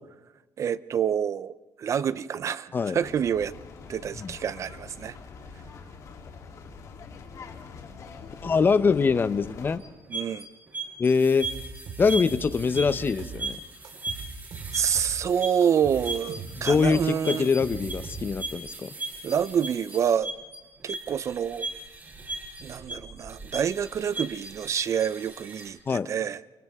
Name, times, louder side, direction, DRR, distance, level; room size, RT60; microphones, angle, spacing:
voice 1, 0.6-3.5 3.9-5.2 10.1-10.5 14.7-17.5 19.2-20.3 20.8-21.7 22.6-26.4, right 8 dB, 45° right, 16 dB, 0.6 m, -27 dB
sound 1, 3.0-9.8, left 5 dB, 50° left, 3.2 m, -44 dB
voice 2, 8.4-9.9 11.0-11.5 12.0-13.6 16.6-18.9 25.9-26.1, left 5 dB, 30° left, 14 dB, 0.8 m, -23 dB
sound 2, 9.8-25.7, right 2 dB, 25° right, 6.0 m, -38 dB
sound 3, 11.4-13.6 13.8-15.3 15.6-18.6, right 5 dB, 60° right, 4.3 m, -39 dB
29.5 x 29.0 x 3.6 m, 1.2 s
cardioid pair, 115°, 7 cm